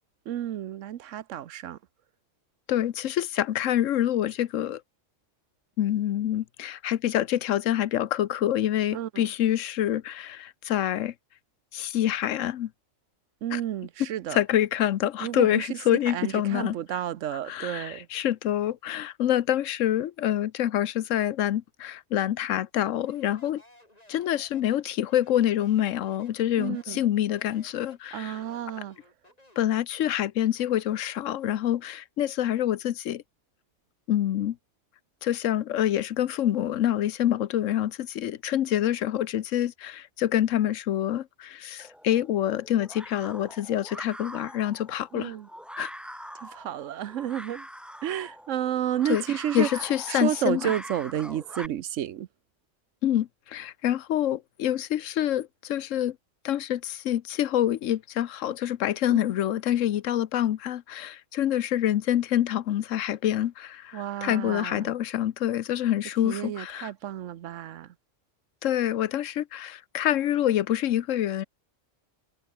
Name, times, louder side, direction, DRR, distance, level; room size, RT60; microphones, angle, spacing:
voice 1, 0.3-1.8 8.9-9.2 13.4-14.4 15.2-18.1 26.6-27.0 28.1-29.0 45.1-45.5 46.4-47.7 48.0-52.3 59.1-59.2 63.9-64.9 66.2-67.9, right 11 dB, 80° right, 1.1 m, -31 dB
voice 2, 2.7-4.8 5.8-11.1 11.7-12.7 13.5-13.6 14.3-17.0 17.5-23.6 24.1-28.4 29.6-33.2 34.1-34.6 35.2-45.4 45.8-45.9 49.1-49.2 49.5-50.7 53.0-56.2 56.4-66.9 68.6-71.4, left 11 dB, 85° left, 1.1 m, -26 dB
Speech, 23.0-29.7, left 1 dB, 30° left, 5.2 m, -57 dB
sound 1, 41.8-51.7, equal, ahead, 4.4 m, -43 dB
omnidirectional pair, 1.3 m